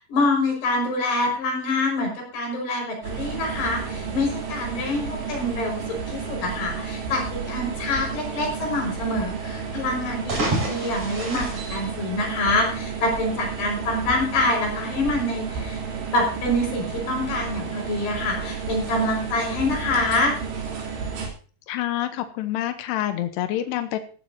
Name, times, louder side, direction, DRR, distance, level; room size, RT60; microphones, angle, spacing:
voice 1, 0.1-15.8 16.1-20.4, left 2 dB, 70° left, 1 dB, 7.5 m, -26 dB
sound 1, 3.0-21.3, right 6 dB, 85° right, 5.3 m, -32 dB
sound 2, 10.1-12.7, right 1 dB, 45° right, 6.6 m, -29 dB
voice 2, 21.7-24.0, left 13 dB, 90° left, 8 dB, 3.0 m, -27 dB
15.0 x 14.5 x 2.8 m, 0.39 s
omnidirectional pair, 4.8 m